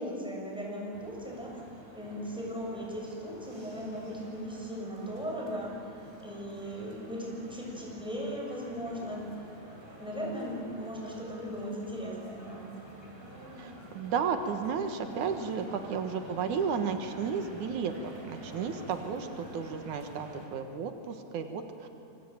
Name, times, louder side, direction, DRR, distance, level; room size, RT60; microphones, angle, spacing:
voice 1, 0.0-1.6 1.9-5.8 6.2-9.3 10.0-12.7, equal, ahead, -2 dB, 6.6 m, -37 dB
sound 1, 0.9-20.5, equal, 20° right, 5.0 m, -49 dB
voice 2, 13.6-21.9, right 6 dB, 85° right, 6 dB, 2.9 m, -33 dB
27.0 x 23.0 x 9.2 m, 2.6 s
omnidirectional pair, 3.4 m